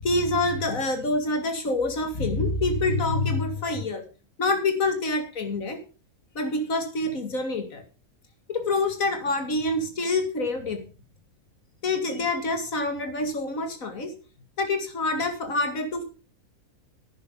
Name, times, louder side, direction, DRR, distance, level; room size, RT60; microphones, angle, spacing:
voice 1, 0.0-4.0 4.4-5.8 6.3-7.8 8.5-10.9 11.8-14.1 14.6-16.0, left 2 dB, 70° left, 7 dB, 2.5 m, -26 dB
11.5 x 9.7 x 5.1 m, 0.34 s
omnidirectional pair, 1.5 m